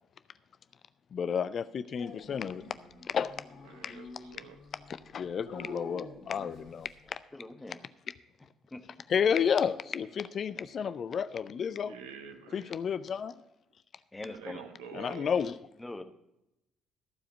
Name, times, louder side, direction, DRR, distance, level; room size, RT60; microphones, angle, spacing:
voice 1, 1.1-2.6 3.1-3.3 3.8-4.0 5.1-7.2 9.1-11.9 12.5-13.3 14.9-15.5, left 7 dB, 45° left, 14 dB, 0.4 m, -31 dB
Dog, 2.0-7.1, left 2 dB, 65° left, 2.6 m, -48 dB
voice 2, 3.6-4.6 11.8-12.7 14.3-15.3, right 7 dB, 70° right, 7 dB, 1.0 m, -47 dB
voice 3, 7.3-7.8 8.7-8.8 14.1-14.6 15.8-16.0, left 2 dB, 15° left, 7 dB, 1.2 m, -42 dB
14.5 x 4.9 x 7.1 m, 0.87 s
figure-of-eight pair, 45°, 0 cm